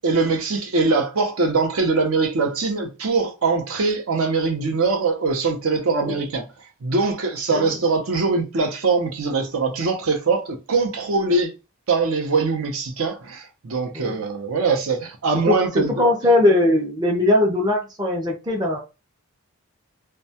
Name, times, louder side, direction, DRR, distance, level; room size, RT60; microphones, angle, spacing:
voice 1, 0.0-6.4 6.8-11.5 11.9-16.0, right 4 dB, 70° right, 0.6 m, -22 dB
voice 2, 15.5-18.8, left 1 dB, 20° right, 0.5 m, -20 dB
2.2 x 2.1 x 2.7 m
head